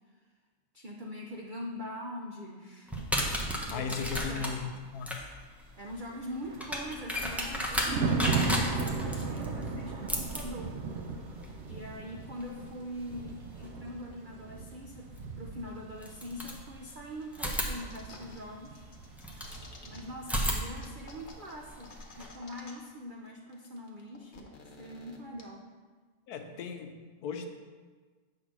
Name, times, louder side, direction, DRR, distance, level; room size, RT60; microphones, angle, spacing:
voice 1, 0.7-3.9 4.3-4.8 5.8-10.7 11.7-18.9 19.9-25.7, equal, 75° right, 0 dB, 0.4 m, -43 dB
sound 1, 2.9-13.7 15.2-15.3 16.0-17.0 17.3-19.6 20.2-22.3, equal, ahead, 0.4 m, -36 dB
voice 2, 3.7-5.1 26.3-27.5, left 5 dB, 75° left, 6 dB, 1.1 m, -37 dB
Thunder, 6.1-20.7 20.9-21.2, right 4 dB, 55° right, 0.8 m, -37 dB
sound 2, 17.6-18.4 18.6-20.0 20.3-20.4 20.8-23.0 23.3-23.4 23.5-25.4, left 3 dB, 50° left, 1.1 m, -51 dB
8.1 x 3.8 x 6.0 m, 1.4 s
omnidirectional pair, 1.8 m